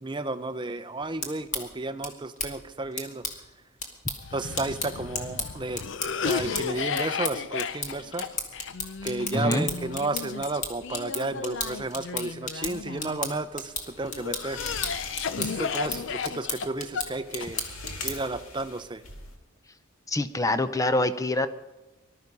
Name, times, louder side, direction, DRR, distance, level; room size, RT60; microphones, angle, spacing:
voice 1, 0.0-3.2 4.3-5.8 6.2-8.3 9.0-14.6 15.4-17.6 18.0-19.0, right 2 dB, 20° right, 10 dB, 0.6 m, -32 dB
sound 1, 1.0-18.4, left 3 dB, 35° left, 2.1 m, -36 dB
Cough, 4.2-13.4 14.0-17.9, left 6 dB, 60° left, 0.5 m, -34 dB
voice 2, 9.3-9.7 20.1-21.5, left 2 dB, 15° left, 11 dB, 0.6 m, -25 dB
sound 2, 13.8-19.4, left 3 dB, 80° left, 2.3 m, -43 dB
20.0 x 12.5 x 5.4 m, 1.1 s
head